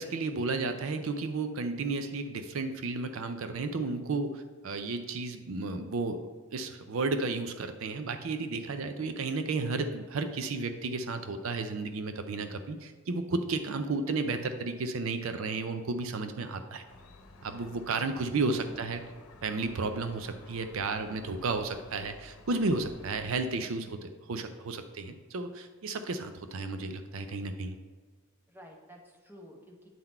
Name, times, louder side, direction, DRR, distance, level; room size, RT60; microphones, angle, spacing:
voice 1, 0.0-16.8 17.4-19.0 19.4-27.7, right 3 dB, 70° right, 8 dB, 0.5 m, -33 dB
Gull seagull, 16.9-23.4, left 2 dB, 90° left, 0.8 m, -53 dB
voice 2, 28.5-29.9, equal, 10° right, 0 dB, 0.9 m, -52 dB
9.3 x 3.9 x 4.3 m, 1.5 s
head